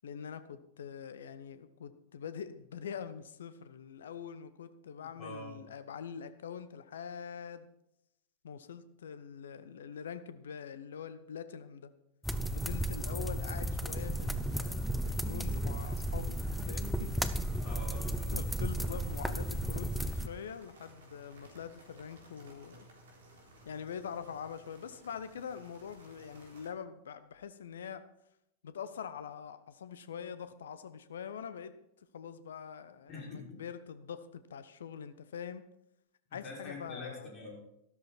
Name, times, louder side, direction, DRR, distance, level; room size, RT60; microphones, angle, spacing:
voice 1, 0.0-7.7 8.4-11.9 12.5-16.4 16.6-17.1 18.3-22.9 23.6-28.0 28.6-31.7 32.1-35.6 36.3-37.3, left 7 dB, 65° left, 12 dB, 1.0 m, -44 dB
voice 2, 5.2-5.7 17.6-18.4 33.1-33.6 36.3-37.6, left 2 dB, 30° left, -3 dB, 5.7 m, -45 dB
sound 1, 12.2-20.3, right 1 dB, ahead, 0.8 m, -34 dB
sound 2, 13.6-26.7, right 1 dB, 65° right, 3.8 m, -58 dB
13.5 x 13.0 x 4.4 m, 0.81 s
figure-of-eight pair, 90°, 0 cm